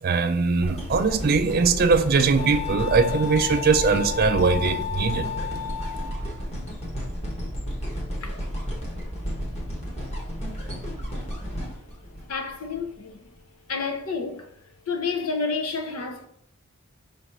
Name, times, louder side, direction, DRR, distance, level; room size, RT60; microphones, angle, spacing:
voice 1, 0.0-5.3, right 4 dB, 40° right, 0.4 m, -21 dB
sound 1, 0.6-12.8 13.4-13.5, equal, 30° left, 1.1 m, -32 dB
Wind instrument woodwind instrument, 1.1-6.4, left 9 dB, 45° left, 1.9 m, -34 dB
voice 2, 12.3-13.3 13.7-14.5 14.9-16.3, left 4 dB, 75° left, 0.7 m, -29 dB
4.9 x 2.5 x 4.3 m
head